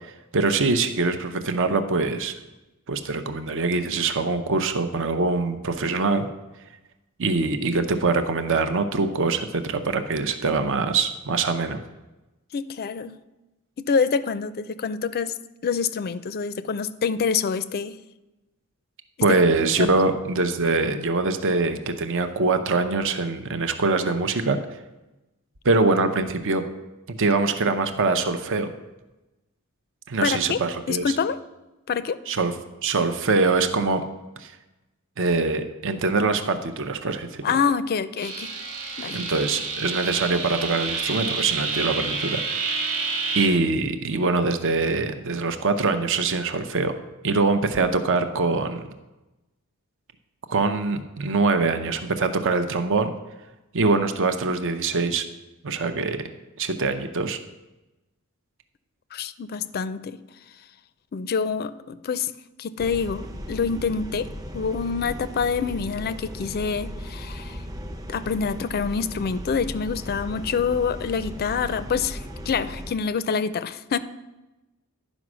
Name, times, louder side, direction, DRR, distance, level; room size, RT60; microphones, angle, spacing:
voice 1, 0.3-2.3 2.9-6.3 7.2-11.8 19.2-24.6 25.6-26.6 27.1-28.7 30.1-31.2 32.3-32.5 32.8-34.0 34.4-34.5 35.2-37.4 39.1-42.4 43.3-46.9 47.2-48.8 50.5-53.1 53.7-55.2 55.6-56.2 56.6-57.4, right 3 dB, 60° right, 9 dB, 0.7 m, -23 dB
voice 2, 12.5-13.2 13.8-15.3 15.6-18.0 19.3-19.4 19.8-20.0 30.2-30.6 30.9-31.4 31.9-32.2 37.4-38.5 39.0-39.2 59.1-60.2 61.1-62.3 62.6-64.3 64.5-67.6 68.1-74.0, left 6 dB, 45° left, 14 dB, 0.4 m, -26 dB
sound 1, 38.2-43.5, right 4 dB, 85° right, 1.8 m, -29 dB
sound 2, 62.8-72.9, equal, 15° right, 0.6 m, -37 dB
11.0 x 5.2 x 6.1 m, 1.0 s
head